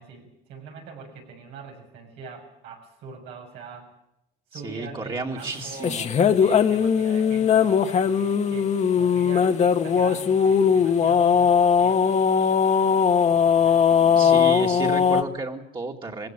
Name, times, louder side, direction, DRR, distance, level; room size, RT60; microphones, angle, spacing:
voice 1, 0.0-3.9 4.5-6.0 6.4-12.1 13.3-14.5, right 5 dB, 90° right, 2 dB, 6.6 m, -43 dB
voice 2, 4.5-6.1 14.2-16.3, right 3 dB, 30° right, -1 dB, 2.3 m, -32 dB
sound 1, 5.8-15.2, left 7 dB, 45° left, 1.5 m, -19 dB
21.0 x 16.5 x 9.0 m, 0.84 s
cardioid pair, 110°, 17 cm